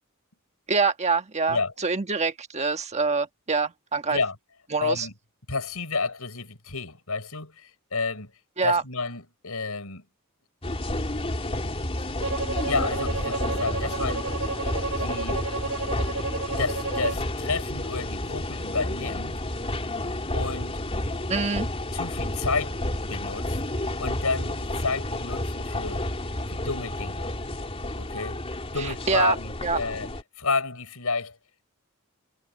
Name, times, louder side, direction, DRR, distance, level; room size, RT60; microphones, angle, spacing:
voice 1, 0.7-4.2 4.7-5.1 8.6-8.8 21.3-21.7 28.8-29.3 29.6-29.8, right 4 dB, 30° right, 1.4 m, -25 dB
voice 2, 4.8-5.1 5.5-8.3 8.6-10.0 11.5-11.6 12.0-12.1 12.6-14.3 14.7-15.4 16.5-19.4 20.3-20.8 21.9-22.8 23.1-23.6 24.0-26.0 26.5-27.3 28.0-28.4 28.7-30.1 30.4-31.4, left 4 dB, 80° left, 5.0 m, -30 dB
sound 1, 10.6-30.2, left 1 dB, 25° left, 3.3 m, -31 dB
Bowed string instrument, 12.2-17.3, right 3 dB, 75° right, 4.3 m, -31 dB
head